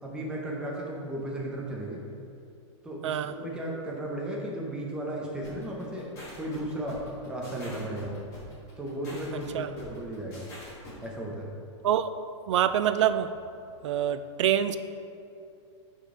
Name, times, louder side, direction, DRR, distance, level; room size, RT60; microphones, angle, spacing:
voice 1, 0.0-2.0 2.8-6.1 6.4-8.2 8.8-10.5 11.0-11.5, right 1 dB, 5° right, -3 dB, 0.6 m, -35 dB
sound 1, 5.4-11.1, left 1 dB, 20° left, 1.3 m, -45 dB
voice 2, 12.5-13.3 13.8-14.8, right 10 dB, 75° right, 12 dB, 0.4 m, -25 dB
8.9 x 4.0 x 3.7 m, 2.5 s
supercardioid pair, 175°, 16 cm